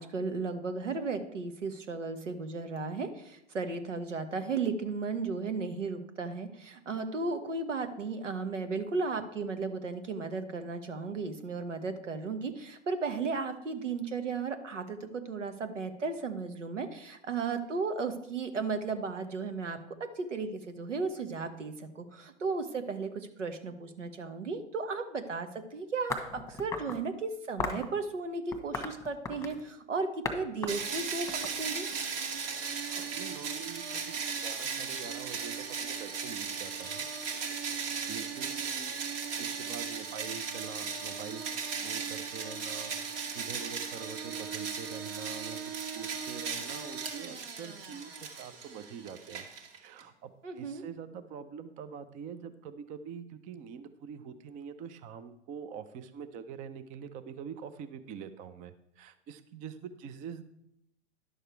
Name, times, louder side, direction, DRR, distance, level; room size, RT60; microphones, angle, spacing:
voice 1, 0.0-19.8 20.2-31.9 50.4-50.8, right 4 dB, 85° right, 8 dB, 1.3 m, -35 dB
sound 1, 26.1-27.0 27.6-27.9 28.5-29.6 30.2-30.4 30.6-32.0, left 3 dB, 10° left, 1.3 m, -36 dB
sound 2, 30.7-50.0, right 6 dB, 50° right, 1.9 m, -37 dB
voice 2, 32.6-37.1 37.8-39.0 39.4-49.5 49.8-60.4, right 7 dB, 20° right, 11 dB, 0.5 m, -45 dB
11.0 x 6.5 x 4.5 m, 0.78 s
hypercardioid pair, 110°, 36 cm